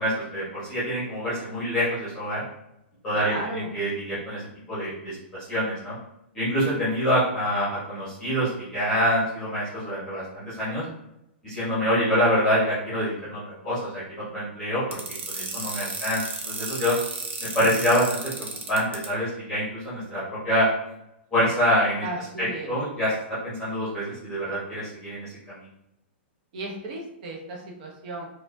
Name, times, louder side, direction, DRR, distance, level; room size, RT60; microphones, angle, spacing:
voice 1, 0.0-2.4 3.0-4.4 4.7-5.9 6.3-10.8 11.4-14.0 14.3-15.0 15.3-17.0 17.4-18.2 18.7-20.7 21.3-22.0 22.4-23.1 23.4-25.6, equal, 10° left, -11 dB, 1.0 m, -26 dB
voice 2, 3.1-3.8 22.0-22.8 26.5-28.3, right 2 dB, 40° right, -2 dB, 0.8 m, -35 dB
sound 1, 14.9-19.1, right 4 dB, 80° right, 0.9 m, -33 dB
4.7 x 2.4 x 2.6 m, 0.85 s
supercardioid pair, 180°, 6 cm